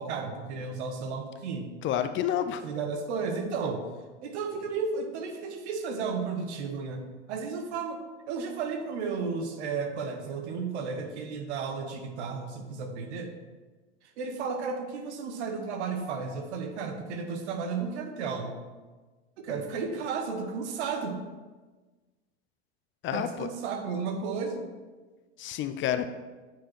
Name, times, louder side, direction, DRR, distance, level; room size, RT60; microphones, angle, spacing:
voice 1, 0.0-1.7 2.6-3.8 4.2-7.0 7.3-8.0 8.3-13.3 14.2-18.5 19.4-21.2 23.1-24.7, right 5 dB, 70° right, 6 dB, 1.3 m, -33 dB
voice 2, 1.8-2.6 23.0-23.5 25.4-26.1, left 10 dB, 35° left, 10 dB, 0.5 m, -29 dB
9.1 x 5.0 x 4.5 m, 1.3 s
hypercardioid pair, 95°, 35 cm